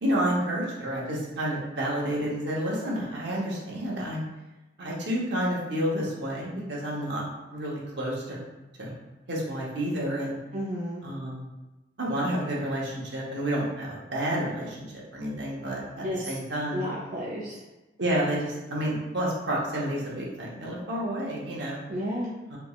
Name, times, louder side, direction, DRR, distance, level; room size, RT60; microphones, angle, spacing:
voice 1, 0.0-4.2 4.8-7.2 7.5-8.4 8.8-8.9 9.3-10.4 11.0-11.4 12.0-16.8 18.0-21.8 22.5-22.6, right 1 dB, 65° right, -4 dB, 0.9 m, -30 dB
voice 2, 10.5-11.0 16.0-16.3 16.7-17.6 21.9-22.3, equal, 40° right, -6 dB, 0.4 m, -32 dB
3.4 x 3.0 x 2.4 m, 1.1 s
head